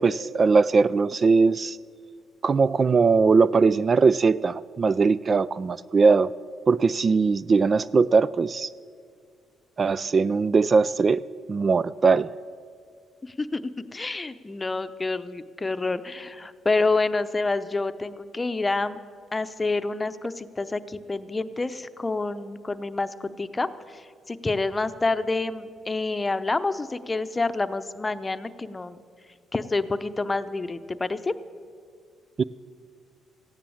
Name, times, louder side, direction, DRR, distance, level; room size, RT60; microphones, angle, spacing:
voice 1, 0.0-1.8 2.4-6.3 6.7-8.7 9.8-11.2 11.5-12.4 32.4-32.5, right 4 dB, 40° right, 18 dB, 0.3 m, -20 dB
voice 2, 13.2-19.0 19.3-29.0 29.5-31.3, left 3 dB, 20° left, 12 dB, 0.8 m, -28 dB
15.5 x 10.5 x 8.6 m, 2.1 s
cardioid pair, 90°, 0 cm